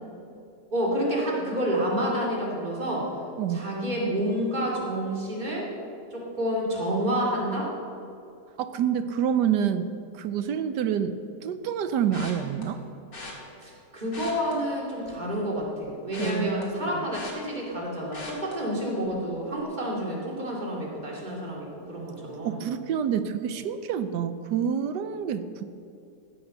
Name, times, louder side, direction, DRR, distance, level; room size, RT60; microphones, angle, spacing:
voice 1, 0.7-3.1 3.5-5.7 6.1-7.7 13.6-22.6, equal, 25° right, -3 dB, 2.6 m, -29 dB
voice 2, 8.6-9.9 10.1-12.8 16.2-16.5 16.9-17.1 22.2-25.6, right 8 dB, 80° right, 11 dB, 1.3 m, -27 dB
sound 1, 12.1-12.6 13.1-13.3 14.0-15.3 15.6-17.8 18.1-18.5 19.0-19.3 19.5-19.6, left 3 dB, 75° left, 3.1 m, -42 dB
15.0 x 7.9 x 6.5 m, 2.6 s
omnidirectional pair, 1.9 m